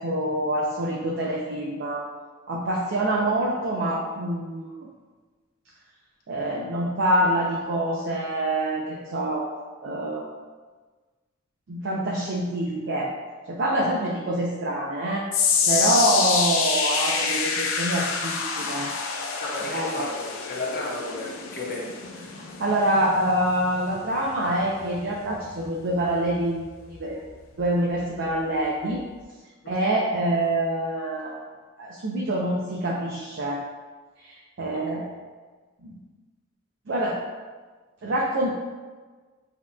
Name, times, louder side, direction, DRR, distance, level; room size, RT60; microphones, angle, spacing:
voice 1, 0.0-2.0 2.5-4.7 6.3-9.5 9.8-10.3 11.7-13.1 13.5-15.3 15.7-18.9 19.7-20.1 22.3-26.6 26.9-27.2 27.6-29.0 29.7-31.4 31.8-33.6 34.2-35.1 35.8-36.0 36.9-37.2 38.0-38.6, right 1 dB, 60° right, -2 dB, 0.5 m, -26 dB
sound 1, 15.3-27.6 27.9-28.3 28.9-29.0, left 5 dB, 70° left, 0.5 m, -28 dB
voice 2, 19.4-22.0 29.6-29.7 34.7-35.0, left 2 dB, 50° left, -3 dB, 1.0 m, -34 dB
7.1 x 2.9 x 2.2 m, 1.4 s
head